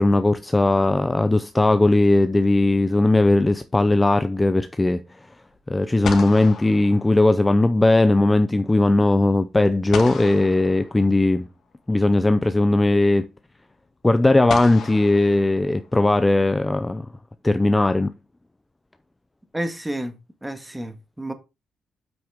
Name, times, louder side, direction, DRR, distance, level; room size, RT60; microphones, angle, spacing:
voice 1, 0.0-5.0 5.7-11.5 11.9-13.3 14.0-17.1 17.4-18.1, left 2 dB, 15° left, 0.5 m, -18 dB
sound 1, 0.5-1.4 5.5-5.6 6.0-7.8 9.9-11.5 12.8-12.9 14.5-16.1, left 6 dB, 65° left, 2.0 m, -36 dB
voice 2, 19.5-20.2 20.4-21.3, right 1 dB, 10° right, 1.6 m, -30 dB
8.1 x 6.1 x 3.6 m
cardioid pair, 90°, 0 cm